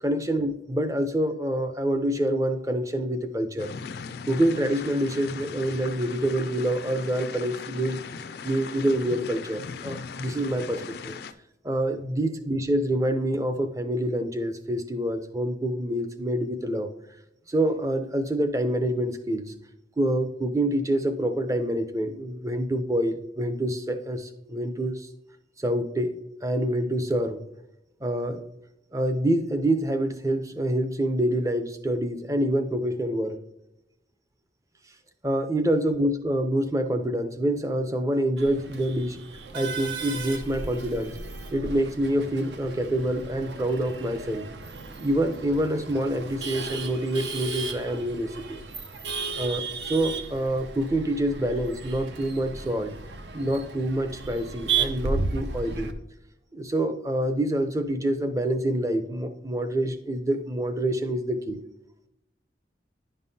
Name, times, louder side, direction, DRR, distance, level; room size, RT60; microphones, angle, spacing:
voice 1, 0.0-3.7 4.3-8.0 8.4-11.1 11.6-16.9 17.5-19.5 20.0-25.1 25.6-26.1 26.4-27.4 28.0-28.4 28.9-33.4 35.2-39.2 39.5-41.2 41.5-44.5 45.0-48.6 49.4-52.9 53.3-55.9 56.5-61.6, right 1 dB, 20° right, 8 dB, 0.5 m, -26 dB
sound 1, 3.6-11.3, left 5 dB, 60° left, 0.4 m, -39 dB
Male speech man speaking / Laughter / Chatter, 38.4-55.9, right 4 dB, 75° right, 0.6 m, -35 dB
10.5 x 5.4 x 2.7 m, 0.86 s
head